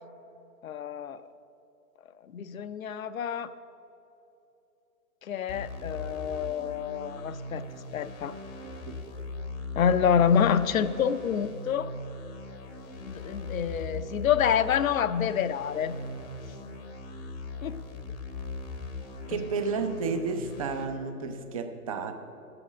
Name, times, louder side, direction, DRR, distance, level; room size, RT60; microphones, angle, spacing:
voice 1, 0.6-1.2 2.3-3.5 5.2-7.6 7.9-8.3 9.8-11.9 13.0-16.0 17.6-17.8, left 8 dB, 60° left, 13 dB, 0.6 m, -27 dB
sound 1, 5.5-20.9, left 2 dB, 20° left, 0.8 m, -40 dB
voice 2, 8.6-9.0 19.3-22.1, right 4 dB, 25° right, 6 dB, 0.5 m, -32 dB
12.0 x 7.9 x 6.0 m, 2.9 s
figure-of-eight pair, 130°, 46 cm